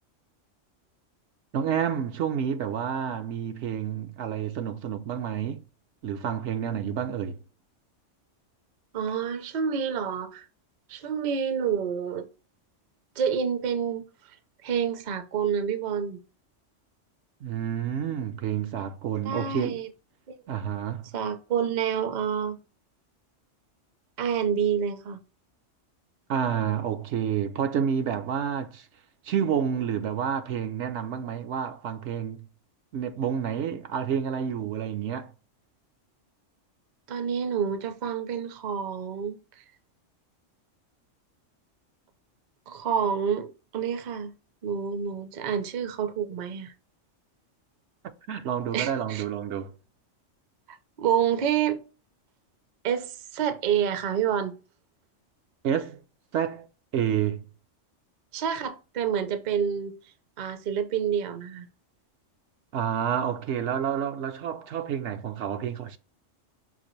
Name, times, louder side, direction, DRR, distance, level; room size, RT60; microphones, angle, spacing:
voice 1, 1.5-5.6 6.0-7.4 17.4-19.8 20.5-21.1 26.3-28.9 29.2-32.5 32.9-35.3 48.3-49.7 55.6-56.0 56.3-56.7 56.9-57.5 62.7-66.0, right 8 dB, 75° right, 0.9 m, -29 dB
voice 2, 8.9-10.5 10.9-12.3 13.2-14.0 14.6-16.2 19.2-19.9 20.3-20.4 21.1-22.6 24.2-25.2 37.1-39.4 42.7-44.3 44.6-46.7 48.7-49.2 51.0-51.8 52.8-54.5 58.3-59.9 60.4-61.7, right 8 dB, 50° right, 0.6 m, -28 dB
5.8 x 2.5 x 3.0 m
omnidirectional pair, 1.3 m